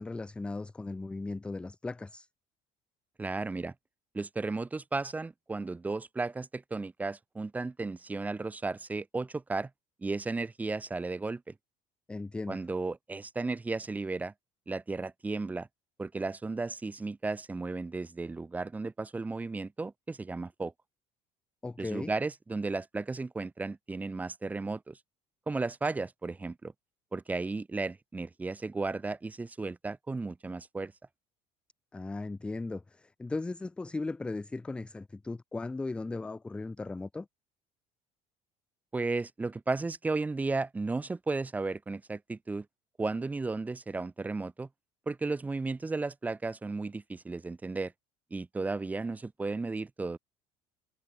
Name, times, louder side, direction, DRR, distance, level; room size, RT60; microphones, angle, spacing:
voice 1, 0.0-2.3 12.1-12.6 21.6-22.1 31.9-37.3, left 3 dB, 5° left, 0.3 m, -37 dB
voice 2, 3.2-3.7 4.1-9.7 10.0-11.5 12.5-14.3 14.7-15.7 16.0-20.7 21.8-25.0 25.5-26.7 27.1-30.9 38.9-42.7 43.0-44.7 45.1-47.9 48.3-50.2, right 3 dB, 10° right, 0.7 m, -34 dB
cardioid pair, 160°, 15 cm